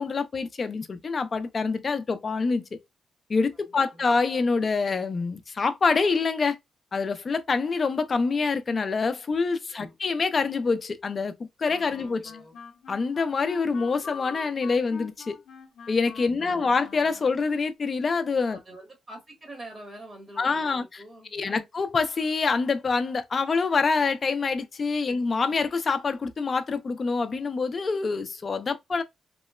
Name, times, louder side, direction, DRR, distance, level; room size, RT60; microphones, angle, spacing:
voice 1, 0.0-2.6 3.3-6.6 6.9-11.3 11.6-12.3 12.9-15.4 15.9-18.6 20.4-21.0 21.3-29.0, left 4 dB, 40° left, 0.4 m, -26 dB
voice 2, 3.5-4.1 9.7-9.9 11.9-12.5 16.3-16.7 18.5-21.7 25.0-25.1, right 1 dB, 25° right, 1.1 m, -46 dB
Wind instrument woodwind instrument, 11.7-17.4, left 6 dB, 85° left, 0.6 m, -44 dB
3.0 x 2.0 x 2.2 m
cardioid pair, 110°, 0 cm